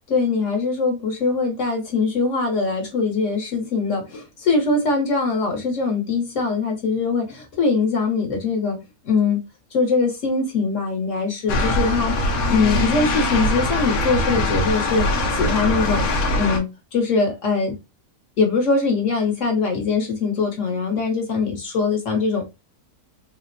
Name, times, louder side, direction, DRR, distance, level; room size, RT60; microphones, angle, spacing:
voice 1, 0.1-8.8 9.0-9.4 9.7-12.1 12.5-17.7 18.4-22.5, left 4 dB, 55° left, 1.4 m, -22 dB
sound 1, 11.5-16.6, left 1 dB, 75° left, 1.2 m, -22 dB
3.7 x 2.2 x 2.5 m
omnidirectional pair, 1.6 m